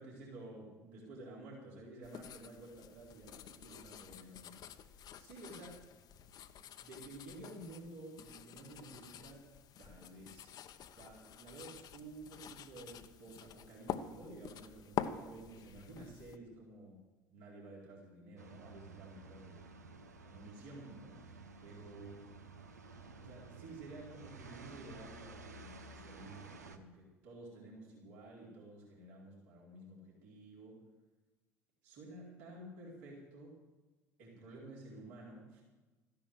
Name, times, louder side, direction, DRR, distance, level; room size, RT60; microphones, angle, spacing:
voice 1, 0.0-4.8 5.2-5.9 6.8-9.5 9.8-10.6 11.0-17.0 17.3-19.6 20.2-22.2 23.2-30.8 31.8-33.6 34.2-35.6, right 2 dB, 70° right, -4 dB, 4.3 m, -52 dB
sound 1, 2.0-16.4, left 9 dB, 50° left, 0.9 m, -47 dB
sound 2, 18.4-26.8, right 3 dB, 85° right, 0.9 m, -53 dB
14.0 x 10.5 x 7.9 m, 1.2 s
figure-of-eight pair, 60°, 9 cm